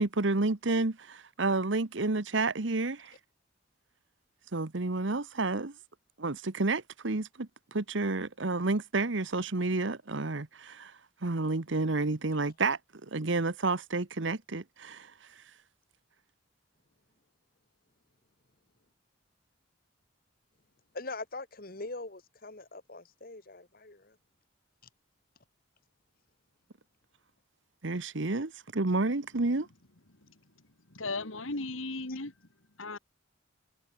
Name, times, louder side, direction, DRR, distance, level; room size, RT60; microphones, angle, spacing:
voice 1, 0.0-3.1 4.5-5.8 6.2-15.4 27.8-29.7, right 3 dB, 70° right, 1.1 m, -30 dB
voice 2, 20.9-24.2 32.1-32.2, left 2 dB, 45° left, 1.9 m, -42 dB
voice 3, 30.9-32.3 32.8-33.0, left 2 dB, 90° left, 3.0 m, -36 dB
head